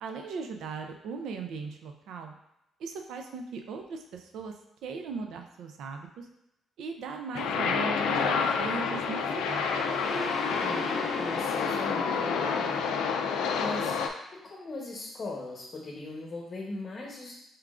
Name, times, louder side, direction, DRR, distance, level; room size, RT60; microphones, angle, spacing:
voice 1, 0.0-2.4 2.8-4.5 4.8-6.3 6.8-9.8, right 5 dB, 80° right, 5 dB, 0.5 m, -38 dB
sound 1, 7.3-14.1, left 5 dB, 90° left, 0.4 m, -28 dB
sound 2, 9.4-12.3, equal, 5° left, 0.5 m, -39 dB
voice 2, 10.6-12.8 13.6-14.0 14.4-17.3, left 2 dB, 40° left, -2 dB, 0.9 m, -39 dB
4.4 x 3.6 x 2.4 m, 0.84 s
cardioid pair, 90°, 0 cm